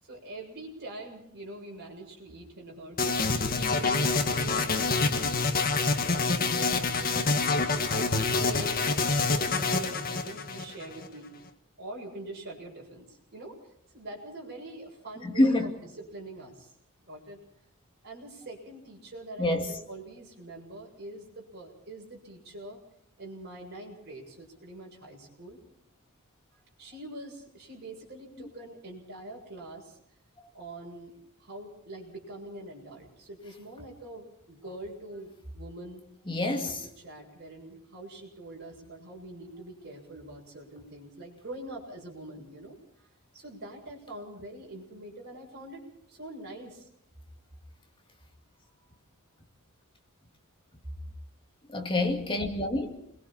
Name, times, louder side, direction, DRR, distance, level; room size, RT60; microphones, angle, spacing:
voice 1, 0.0-3.4 3.8-5.4 6.0-11.3 11.8-13.6 13.9-16.7 17.0-17.4 18.0-22.8 23.2-25.6 26.8-30.0 30.5-31.1 31.4-36.0 36.5-43.1 43.3-46.9, right 1 dB, 50° right, 7.1 m, -44 dB
sound 1, 3.0-11.1, left 3 dB, 40° left, 1.8 m, -27 dB
voice 2, 15.2-15.7 19.4-19.7 36.3-36.7 51.7-53.0, left 1 dB, 25° left, 2.4 m, -26 dB
29.5 x 22.0 x 4.3 m
head